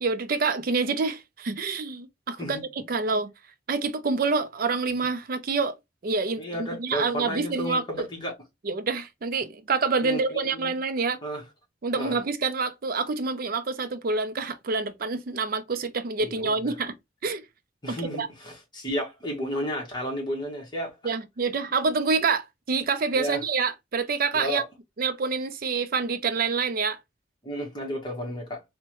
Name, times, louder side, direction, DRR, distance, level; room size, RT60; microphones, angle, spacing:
voice 1, 0.0-3.3 3.7-5.7 6.0-6.4 6.8-8.1 8.6-11.2 11.8-16.9 17.2-17.4 17.9-18.3 21.0-24.6 25.0-27.0, right 4 dB, 50° right, 0.5 m, -27 dB
voice 2, 6.4-8.3 10.0-10.8 11.2-11.4 12.0-12.2 16.2-16.7 17.8-21.1 23.1-23.4 24.3-24.6 27.4-28.6, equal, 25° left, 1.2 m, -33 dB
3.3 x 2.2 x 2.9 m
head